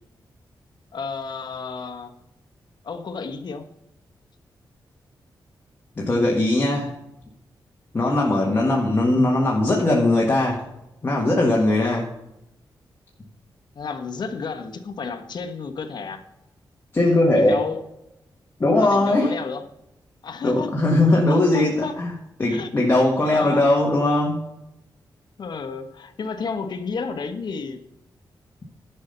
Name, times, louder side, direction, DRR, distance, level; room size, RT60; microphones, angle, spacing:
voice 1, 0.9-2.1 2.8-3.7 8.0-8.3 13.7-16.2 17.3-17.8 18.8-19.6 20.2-20.7 21.3-22.0 22.5-22.7 23.2-23.7 25.4-27.8, left 5 dB, 60° left, 8 dB, 1.2 m, -31 dB
voice 2, 6.0-6.9 7.9-10.6 11.0-12.1 16.9-17.6 18.6-19.3 20.4-24.5, left 2 dB, 30° left, -2 dB, 1.6 m, -20 dB
11.0 x 5.7 x 6.7 m, 0.88 s
wide cardioid pair, 120°, 8 cm